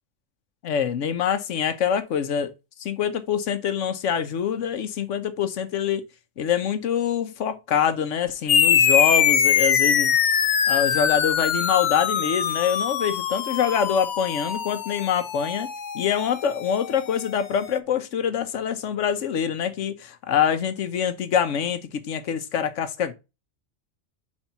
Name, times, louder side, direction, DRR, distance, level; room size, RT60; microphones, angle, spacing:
voice 1, 0.6-2.5 2.8-6.0 6.4-10.3 10.7-15.7 15.9-23.1, left 8 dB, 85° left, 1.2 m, -25 dB
sound 1, 8.5-17.4, left 8 dB, 55° left, 0.5 m, -23 dB
4.8 x 4.5 x 5.5 m
omnidirectional pair, 1.3 m